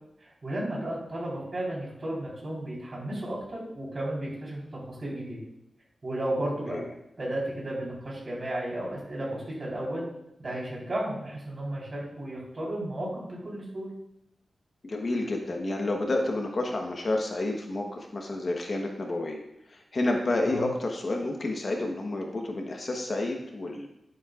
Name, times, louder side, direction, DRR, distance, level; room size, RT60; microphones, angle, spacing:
voice 1, 0.2-5.4 6.0-6.8 7.2-10.0 10.4-13.9 20.5-20.7, right 1 dB, 35° right, -4 dB, 3.8 m, -33 dB
voice 2, 14.8-19.4 19.7-23.9, left 2 dB, 40° left, 1 dB, 1.1 m, -30 dB
11.0 x 9.8 x 2.4 m, 0.81 s
wide cardioid pair, 155°, 0 cm